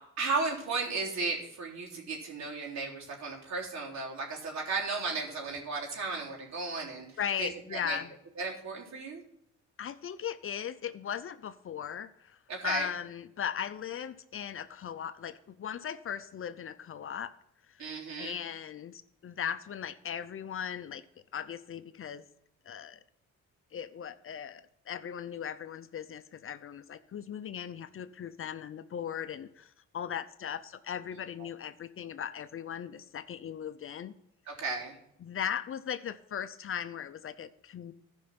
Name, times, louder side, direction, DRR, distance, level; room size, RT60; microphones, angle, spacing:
voice 1, 0.2-7.1 7.4-8.0 8.4-9.2 12.5-12.9 17.8-18.4 31.4-31.5 34.5-35.0, right 4 dB, 65° right, -2 dB, 3.7 m, -35 dB
voice 2, 7.2-8.1 9.8-17.3 17.7-17.9 18.2-21.0 21.3-22.2 22.7-23.0 23.7-34.1 35.2-37.9, left 8 dB, 45° left, 12 dB, 0.6 m, -38 dB
14.5 x 5.4 x 5.9 m, 0.79 s
cardioid pair, 90°, 30 cm